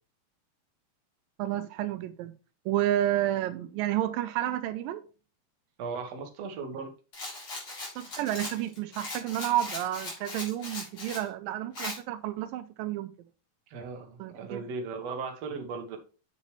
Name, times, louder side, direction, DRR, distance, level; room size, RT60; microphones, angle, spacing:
voice 1, 1.4-2.3 2.7-5.1 8.0-13.1 14.2-14.6, right 13 dB, 85° right, 2.4 m, -30 dB
voice 2, 5.8-6.9 13.7-16.0, right 4 dB, 55° right, 2.3 m, -37 dB
Rattle, 7.1-11.3 11.7-12.0, left 2 dB, 35° left, 4.0 m, -39 dB
8.3 x 6.6 x 3.2 m
omnidirectional pair, 4.0 m